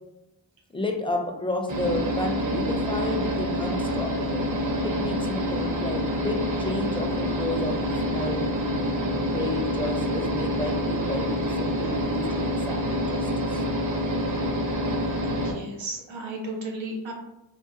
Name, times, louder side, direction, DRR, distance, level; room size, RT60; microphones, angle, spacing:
voice 1, 0.7-4.5 4.8-13.6, left 1 dB, 10° left, 2 dB, 0.4 m, -32 dB
sound 1, 1.7-15.5, equal, 45° right, 0.7 m, -27 dB
voice 2, 15.2-17.1, right 1 dB, 85° right, -1 dB, 0.9 m, -34 dB
3.8 x 2.2 x 2.5 m, 0.92 s
wide cardioid pair, 95°, 45 cm